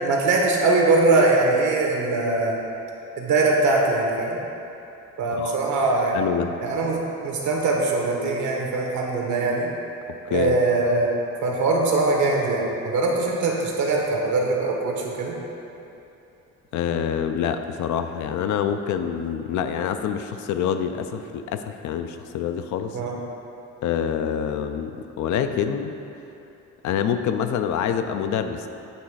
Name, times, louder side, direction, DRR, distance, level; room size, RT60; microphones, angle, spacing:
voice 1, 0.0-2.6 3.2-4.4 5.2-6.2 6.6-9.7 10.3-11.1 11.4-15.4 22.9-23.1, right 3 dB, 75° right, -1 dB, 1.1 m, -22 dB
voice 2, 6.1-6.5 10.3-10.5 16.7-23.0 23.8-25.9 26.8-28.7, left 8 dB, 70° left, 8 dB, 0.5 m, -26 dB
8.4 x 3.1 x 4.8 m, 2.8 s
cardioid pair, 90°, 30 cm